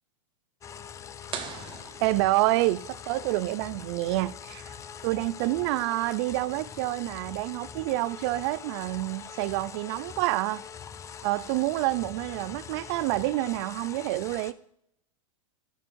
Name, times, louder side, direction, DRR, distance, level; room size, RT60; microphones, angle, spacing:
sound 1, 0.6-14.5, left 7 dB, 20° left, 0.4 m, -43 dB
sound 2, 1.3-3.0, right 7 dB, 30° right, 0.8 m, -40 dB
voice 1, 2.0-4.7 5.0-10.6 11.2-14.5, right 18 dB, 55° right, 0.4 m, -28 dB
11.0 x 6.4 x 2.6 m
hypercardioid pair, 115°, 17 cm